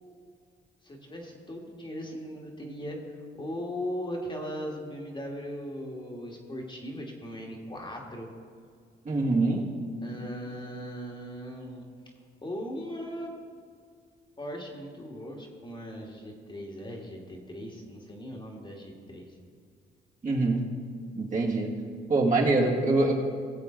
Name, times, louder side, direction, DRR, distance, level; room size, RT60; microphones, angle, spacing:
voice 1, 0.8-8.3 10.0-11.9 12.4-13.3 14.4-19.3, equal, 25° left, 0 dB, 1.9 m, -38 dB
voice 2, 9.1-9.7 20.2-20.7 21.2-21.7 22.1-23.1, right 2 dB, 40° right, -3 dB, 2.2 m, -24 dB
19.0 x 7.7 x 3.9 m, 2.1 s
cardioid pair, 90°, 20 cm